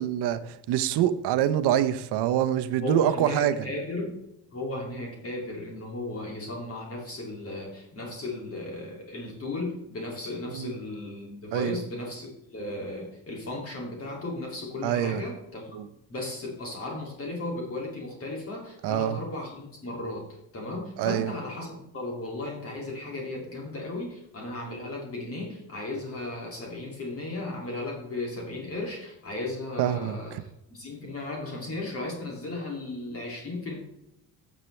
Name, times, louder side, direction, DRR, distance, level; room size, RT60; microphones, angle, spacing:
voice 1, 0.0-3.6 10.5-10.7 11.5-11.8 14.8-15.2 15.7-15.9 18.8-19.2 21.0-21.3 29.8-30.4, right 11 dB, 80° right, 0.8 m, -25 dB
voice 2, 2.8-4.2 4.5-15.7 16.1-33.8, left 2 dB, 35° left, 2.5 m, -35 dB
15.0 x 7.4 x 3.2 m
cardioid pair, 175°, 39 cm